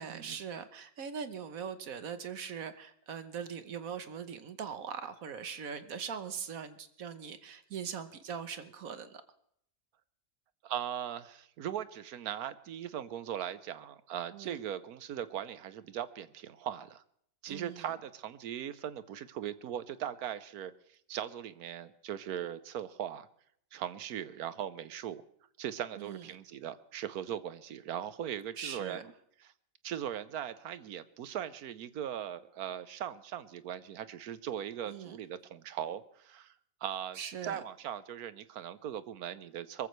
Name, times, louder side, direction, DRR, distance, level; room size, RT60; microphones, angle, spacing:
voice 1, 0.0-9.2 14.3-14.6 17.5-17.9 26.0-26.4 28.6-29.0 34.9-35.2 37.1-37.6, right 7 dB, 70° right, 11 dB, 1.4 m, -41 dB
voice 2, 10.6-17.0 17.4-23.3 23.7-25.2 25.6-29.0 29.4-29.5 29.8-36.5 36.8-39.9, right 10 dB, 85° right, 14 dB, 1.3 m, -39 dB
23.0 x 14.5 x 3.2 m, 0.69 s
omnidirectional pair, 1.6 m